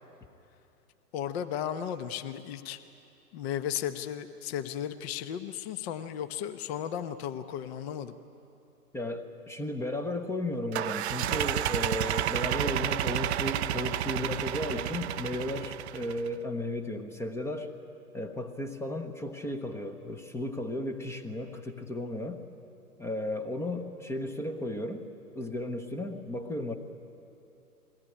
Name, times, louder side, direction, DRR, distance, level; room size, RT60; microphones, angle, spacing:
voice 1, 1.1-2.8 3.3-8.1, left 9 dB, 40° left, 10 dB, 1.0 m, -35 dB
voice 2, 8.9-17.7 18.1-22.4 23.0-25.0 25.3-26.8, left 1 dB, 5° left, 5 dB, 0.8 m, -34 dB
sound 1, 10.7-16.3, right 12 dB, 45° right, 0.5 m, -31 dB
21.5 x 17.5 x 9.9 m, 2.8 s
hypercardioid pair, 125°, 46 cm